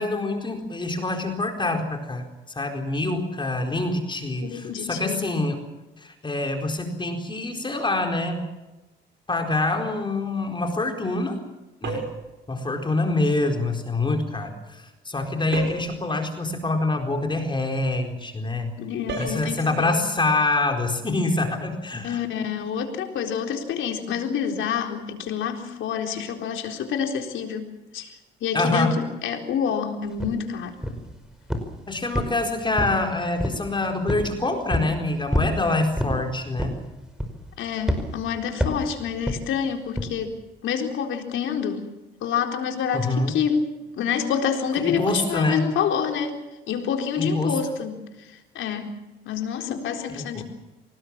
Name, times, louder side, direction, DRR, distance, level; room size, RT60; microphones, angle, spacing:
voice 1, 0.0-2.3 2.5-5.6 6.0-8.5 9.3-11.4 11.8-12.0 12.5-18.7 19.2-22.2 28.5-28.9 31.9-36.7 42.9-43.4 44.8-45.6 47.2-47.6 50.1-50.4, left 2 dB, 25° left, 4 dB, 4.3 m, -25 dB
voice 2, 4.4-5.3 18.8-20.1 22.0-30.7 37.6-40.4 40.6-41.9 42.2-43.7 44.0-46.4 46.7-48.9 49.2-50.4, left 7 dB, 80° left, 4 dB, 4.1 m, -28 dB
sound 1, 11.8-12.3 15.5-16.0 19.1-19.4, right 4 dB, 60° right, 7.4 m, -31 dB
sound 2, 30.2-30.3 30.8-31.1 31.5-31.8 32.1-33.0 33.4-33.7 34.1-34.3 34.7-34.9 35.3-35.6 36.0-36.2 36.6-36.9 37.2-37.5 37.9-38.1 38.6-38.9 39.3-39.4 40.0-40.1, equal, 5° right, 5.3 m, -26 dB
25.5 x 19.5 x 7.4 m, 1.0 s
cardioid pair, 90°, 20 cm